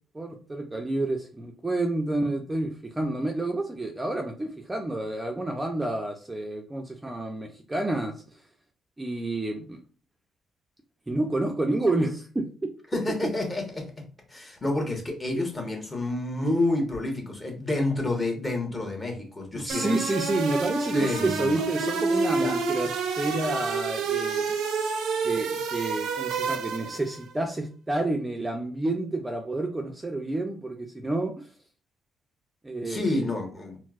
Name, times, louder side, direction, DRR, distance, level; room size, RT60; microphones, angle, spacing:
voice 1, 0.1-8.1 9.0-9.8 11.1-12.5 19.6-24.6 25.2-31.5 32.6-33.3, right 2 dB, 15° right, 0.5 m, -29 dB
voice 2, 12.9-13.9 14.3-20.0 20.9-21.6 22.3-22.6 32.8-33.8, left 2 dB, 25° left, 1.1 m, -29 dB
sound 1, 19.7-27.1, right 5 dB, 85° right, 0.5 m, -29 dB
4.2 x 2.0 x 2.4 m
cardioid pair, 90°, 0 cm